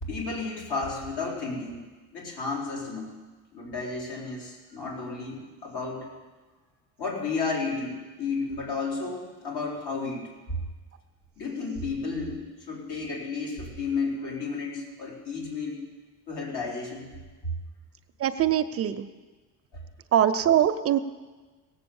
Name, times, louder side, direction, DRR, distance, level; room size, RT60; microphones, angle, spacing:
voice 1, 0.0-1.8 2.1-3.1 3.5-6.1 7.0-10.6 11.4-15.8 16.3-17.1 19.7-19.8, left 4 dB, 80° left, -3 dB, 4.1 m, -32 dB
voice 2, 18.2-19.0 20.1-21.0, right 10 dB, 35° right, 10 dB, 0.4 m, -22 dB
17.5 x 7.4 x 7.0 m, 1.3 s
cardioid pair, 160°, 40 cm